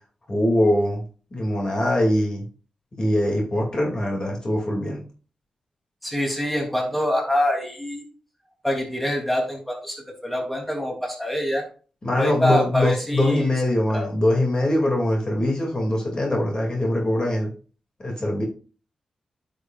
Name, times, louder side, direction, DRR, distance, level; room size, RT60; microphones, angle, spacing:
voice 1, 0.3-1.0 1.3-2.4 3.0-5.0 12.0-17.5 18.0-18.4, left 1 dB, 40° left, 0 dB, 2.5 m, -22 dB
voice 2, 6.0-8.0 8.6-11.6 12.1-13.5 13.9-14.0, left 1 dB, 5° left, 0 dB, 3.0 m, -25 dB
9.7 x 6.7 x 2.5 m, 0.39 s
cardioid pair, 70°, 2 cm